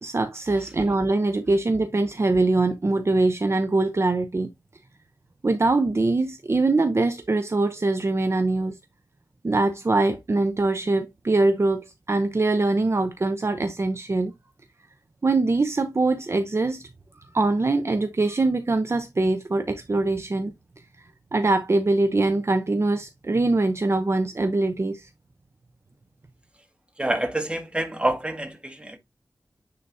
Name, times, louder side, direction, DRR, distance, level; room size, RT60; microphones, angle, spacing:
voice 1, 0.0-4.5 5.4-8.8 9.4-14.3 15.2-16.8 17.3-20.5 21.3-25.1, right 2 dB, 40° right, 0.7 m, -23 dB
voice 2, 27.0-29.0, right 1 dB, 15° right, 1.9 m, -27 dB
9.6 x 4.0 x 2.6 m
wide cardioid pair, 75°, 7 cm